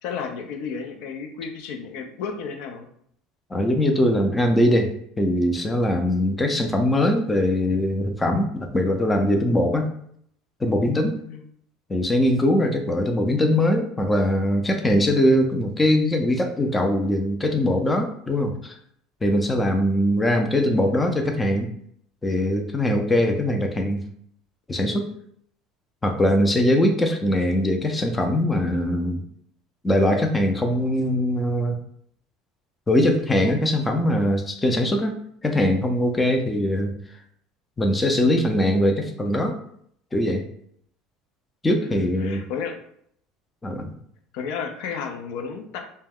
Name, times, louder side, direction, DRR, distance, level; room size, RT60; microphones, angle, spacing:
voice 1, 0.0-2.9 11.3-11.4 41.8-42.8 44.3-45.8, left 6 dB, 75° left, 4 dB, 0.4 m, -32 dB
voice 2, 3.5-4.9 5.2-9.9 10.6-11.2 11.9-18.7 19.2-21.7 22.2-24.0 24.7-25.0 26.0-29.2 29.8-31.8 32.9-35.1 35.4-36.9 37.8-39.5 40.1-40.4 41.6-42.4 43.6-43.9, left 1 dB, 15° left, 4 dB, 0.4 m, -21 dB
2.3 x 2.1 x 3.4 m, 0.66 s
supercardioid pair, 115°, 0 cm